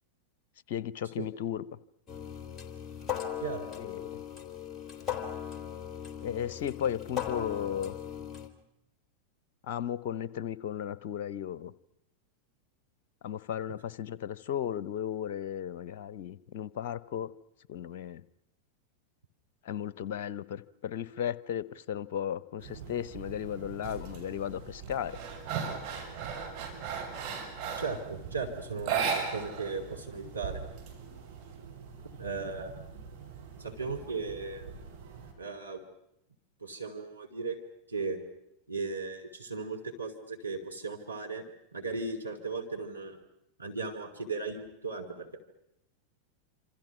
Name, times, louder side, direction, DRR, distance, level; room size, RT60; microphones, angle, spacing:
voice 1, 0.7-1.6 3.8-4.2 6.2-7.9 9.6-11.7 13.2-17.3 17.7-18.2 19.6-25.2, left 9 dB, 50° left, 0.9 m, -35 dB
sound 1, 2.1-8.5, left 9 dB, 15° left, 3.3 m, -38 dB
sound 2, 22.6-35.3, right 6 dB, 55° right, 7.5 m, -46 dB
sound 3, 23.8-24.2 24.6-28.0 28.8-29.7 30.0-30.1 30.5-31.4, right 6 dB, 35° right, 7.0 m, -35 dB
voice 2, 27.7-30.6 32.2-32.7 33.6-34.7 35.4-35.8 36.6-37.6 37.9-38.2 38.7-41.4 41.7-43.2 43.6-45.4, right 4 dB, 85° right, 2.7 m, -36 dB
27.5 x 27.0 x 6.0 m
figure-of-eight pair, 90°, 0 cm